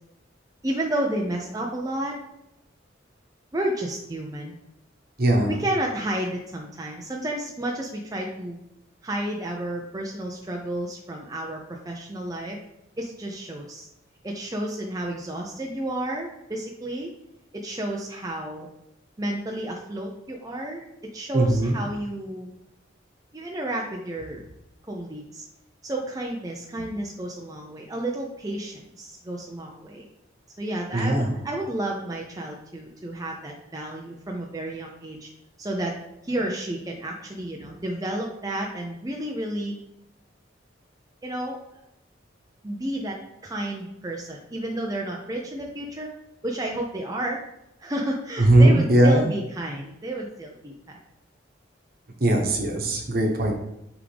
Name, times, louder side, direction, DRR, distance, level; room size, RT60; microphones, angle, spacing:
voice 1, 0.6-2.2 3.5-4.5 5.5-8.6 9.0-12.6 13.0-13.9 14.2-17.1 17.5-18.7 19.2-20.9 21.1-22.5 23.3-24.4 24.9-25.4 25.8-30.0 30.6-35.3 35.6-35.9 36.2-39.7 41.2-41.6 42.6-46.1 46.4-47.4 47.8-51.0, right 1 dB, 20° right, 0 dB, 0.6 m, -31 dB
voice 2, 5.2-5.6 21.3-21.8 30.9-31.3 48.4-49.3 52.2-53.5, right 1 dB, 50° right, 2 dB, 1.2 m, -19 dB
8.6 x 3.6 x 3.4 m, 0.84 s
head